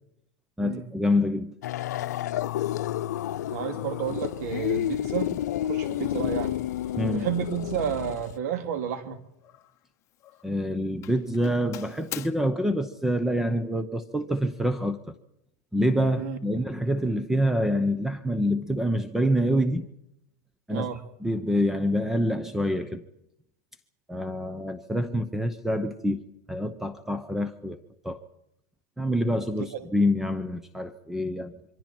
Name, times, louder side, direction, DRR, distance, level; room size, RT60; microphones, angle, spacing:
voice 1, 0.6-1.5 7.0-7.3 10.4-15.0 15.7-19.9 20.7-20.9 21.2-23.1 24.1-26.2 26.5-27.8 28.0-28.2 29.0-31.6, equal, 5° right, 0.8 m, -26 dB
sound 1, 1.6-8.4, left 12 dB, 90° left, 0.7 m, -30 dB
voice 2, 3.5-5.3 5.7-6.6 7.1-9.2 16.2-16.4 20.7-21.0 29.5-29.9, right 8 dB, 70° right, 2.8 m, -31 dB
Doorbell, 6.0-6.2 6.8-7.1 7.4-7.8 8.8-9.9 10.1-10.6 11.0-12.3, left 13 dB, 35° left, 1.3 m, -43 dB
27.5 x 24.0 x 4.5 m
supercardioid pair, 150°, 9 cm